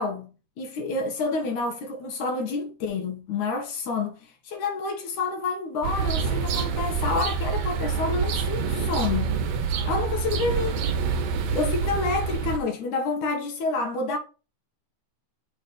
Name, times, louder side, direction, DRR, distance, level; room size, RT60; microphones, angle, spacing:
voice 1, 0.0-9.3 9.9-10.8 11.5-14.2, left 3 dB, 85° left, 3.1 m, -28 dB
sound 1, 5.8-12.6, right 5 dB, 70° right, 2.0 m, -26 dB
6.4 x 3.9 x 5.1 m
omnidirectional pair, 3.4 m